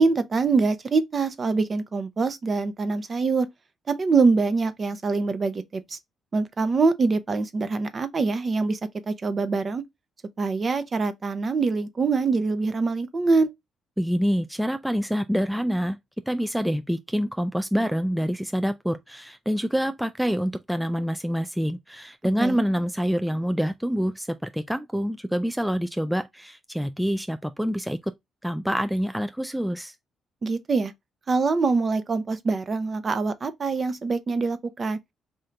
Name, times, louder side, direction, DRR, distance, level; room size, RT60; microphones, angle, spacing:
voice 1, 0.0-3.5 3.9-6.0 6.3-8.8 9.1-9.8 10.4-13.5 22.4-22.6 30.4-30.9 31.3-35.0, right 4 dB, 40° right, 0.6 m, -24 dB
voice 2, 14.0-16.0 16.3-28.1 28.4-29.9, equal, 5° right, 0.3 m, -26 dB
3.8 x 2.7 x 3.3 m
cardioid pair, 90°, 0 cm